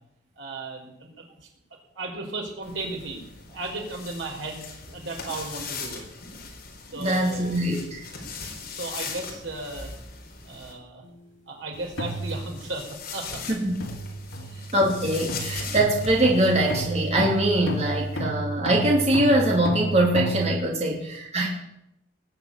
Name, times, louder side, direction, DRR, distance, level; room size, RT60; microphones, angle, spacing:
voice 1, 0.4-1.2 1.9-3.2 3.5-6.0 6.9-7.6 8.6-9.9 10.4-11.0 11.5-13.6 14.4-14.7 21.3-21.5, right 2 dB, 80° right, 1 dB, 4.5 m, -35 dB
sound 1, 2.6-10.7 11.7-18.2, left 5 dB, 55° left, 4.1 m, -40 dB
voice 2, 6.9-8.1 13.5-13.8 14.7-21.5, right 1 dB, 35° right, -1 dB, 2.9 m, -23 dB
sound 2, 11.0-11.3 12.0-12.9 13.8-20.5, right 1 dB, 85° left, 2.6 m, -32 dB
19.5 x 8.0 x 8.8 m, 0.81 s
head